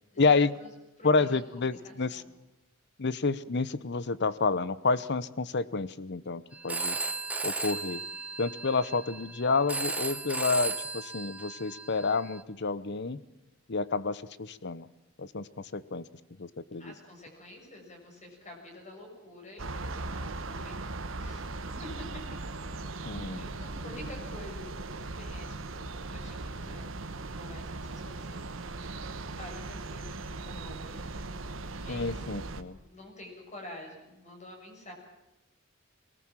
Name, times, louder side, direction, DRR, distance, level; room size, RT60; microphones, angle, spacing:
voice 1, 0.2-0.5 1.0-2.2 3.0-7.0 7.4-8.0 8.4-13.2 13.7-14.9 15.2-16.0 16.4-16.9 23.0-23.5 31.9-32.8, left 4 dB, 55° left, 17 dB, 0.8 m, -29 dB
voice 2, 1.0-2.3 16.8-22.1 23.4-27.1 27.4-28.5 28.8-31.0 31.7-32.3 32.7-34.9, left 1 dB, 35° left, 2 dB, 6.7 m, -48 dB
Telephone, 6.5-12.4, right 3 dB, 5° right, 1.3 m, -35 dB
sound 1, 19.6-32.6, right 2 dB, 65° right, 1.4 m, -39 dB
22.0 x 19.5 x 7.4 m, 0.99 s
head